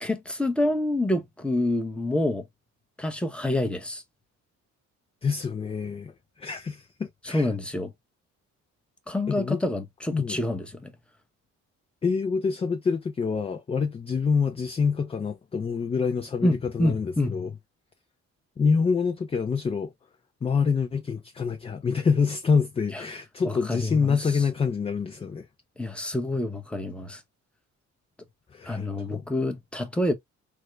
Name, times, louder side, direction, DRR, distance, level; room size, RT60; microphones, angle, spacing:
voice 1, 0.0-2.4 3.0-4.0 7.2-7.9 9.1-10.9 16.4-17.4 22.9-23.0 23.4-24.4 25.8-27.2 28.6-30.1, left 1 dB, 5° left, 0.8 m, -27 dB
voice 2, 5.2-7.5 9.3-9.6 10.1-10.4 12.0-17.5 18.6-19.9 20.4-25.5 28.5-29.3, left 5 dB, 20° left, 0.3 m, -26 dB
3.5 x 2.1 x 3.1 m
cardioid pair, 90°, 30 cm